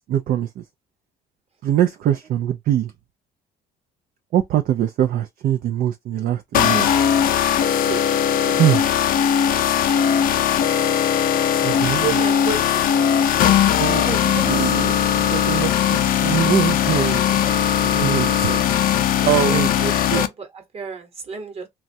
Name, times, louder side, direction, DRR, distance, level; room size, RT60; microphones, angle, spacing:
voice 1, 0.1-0.6 1.6-2.9 4.3-6.9 8.6-8.8 11.6-12.1 13.8-15.0 15.3-17.5 17.8-18.6 19.3-20.2, right 11 dB, 55° right, 0.4 m, -22 dB
sound 1, 6.5-20.3, left 9 dB, 55° left, 0.5 m, -19 dB
voice 2, 12.0-12.8 14.0-14.6 19.2-19.6 20.1-21.7, right 5 dB, 35° right, 1.1 m, -30 dB
3.0 x 2.3 x 2.6 m
cardioid pair, 110°, 17 cm